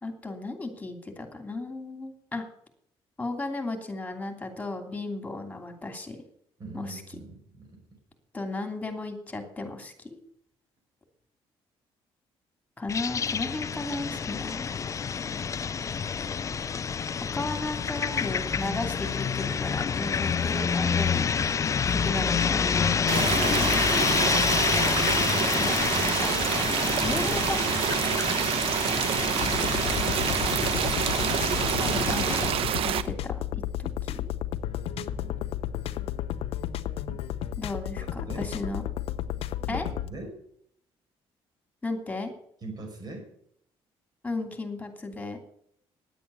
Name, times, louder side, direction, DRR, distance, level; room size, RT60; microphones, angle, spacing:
voice 1, 0.0-2.4 3.2-6.3 6.7-7.0 8.3-10.2 12.8-14.7 17.3-21.3 21.9-23.4 26.2-26.3 27.0-27.9 31.8-32.5 32.8-34.3 37.6-38.8 39.7-39.9 41.8-42.3 44.2-45.4, left 2 dB, 15° left, 5 dB, 2.9 m, -35 dB
voice 2, 6.6-7.8 30.1-30.4 34.9-35.5 37.1-37.2 38.2-38.5 39.7-40.4 42.6-43.3, right 2 dB, 40° right, 2 dB, 5.7 m, -41 dB
sound 1, 12.9-32.5, left 6 dB, 30° left, 0.4 m, -28 dB
sound 2, 23.1-33.0, right 9 dB, 65° right, 0.8 m, -27 dB
sound 3, 29.4-40.1, left 11 dB, 70° left, 0.8 m, -33 dB
10.5 x 8.6 x 8.3 m, 0.68 s
cardioid pair, 115°, 10 cm